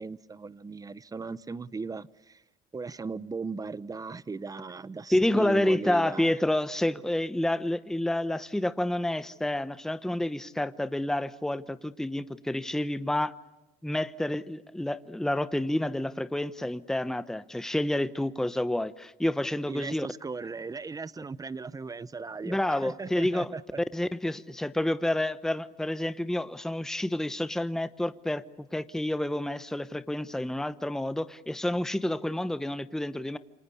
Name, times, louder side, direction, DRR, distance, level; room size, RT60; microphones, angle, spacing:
voice 1, 0.0-2.4 2.7-6.3 19.7-23.8, right 4 dB, 20° right, 18 dB, 0.9 m, -37 dB
voice 2, 5.1-13.3 13.8-20.1 22.4-23.5 23.9-28.4 28.7-33.4, left 1 dB, 5° left, 13 dB, 0.9 m, -29 dB
28.0 x 25.0 x 8.4 m, 1.1 s
cardioid pair, 110°, 17 cm